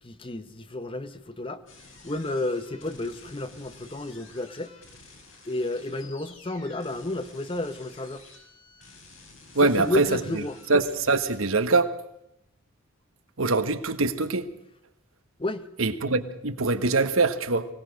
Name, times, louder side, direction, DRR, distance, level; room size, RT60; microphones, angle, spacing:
voice 1, 0.0-1.6 2.0-4.7 5.4-8.2 9.6-10.6 15.4-15.7, left 2 dB, 25° left, 1.0 m, -31 dB
sound 1, 1.7-11.4, left 3 dB, 75° left, 7.1 m, -51 dB
voice 2, 9.5-10.1 10.7-11.9 13.4-14.5 15.8-17.7, right 3 dB, 80° right, 1.5 m, -23 dB
24.0 x 17.5 x 6.4 m
head